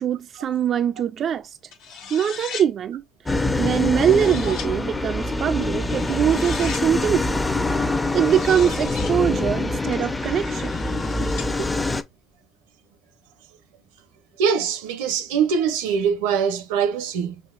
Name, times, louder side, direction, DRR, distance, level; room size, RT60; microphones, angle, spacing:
voice 1, 0.0-1.6 2.1-3.0 3.3-7.4 8.1-10.7, right 9 dB, 55° right, 0.4 m, -22 dB
sound 1, 1.7-2.7 3.6-4.7 5.9-6.9 8.0-9.2 9.9-11.5, left 6 dB, 90° left, 1.8 m, -38 dB
sound 2, 3.3-12.0, left 2 dB, 20° left, 0.7 m, -25 dB
voice 2, 14.4-17.4, right 7 dB, 90° right, 0.7 m, -23 dB
6.1 x 2.8 x 2.5 m
supercardioid pair, 70°, 0 cm